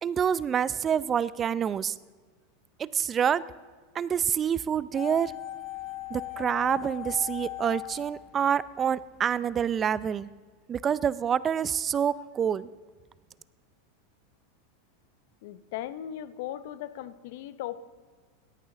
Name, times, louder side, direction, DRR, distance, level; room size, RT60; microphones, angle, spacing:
voice 1, 0.0-1.9 2.9-3.5 3.9-5.3 6.1-10.3 10.7-12.7, right 8 dB, 30° right, 19 dB, 0.4 m, -27 dB
sound 1, 4.9-9.0 9.3-9.4, left 15 dB, 35° left, 1.6 m, -39 dB
voice 2, 15.4-17.8, left 12 dB, 65° left, 14 dB, 0.7 m, -37 dB
17.5 x 12.5 x 3.8 m, 1.5 s
hypercardioid pair, 100°, 0 cm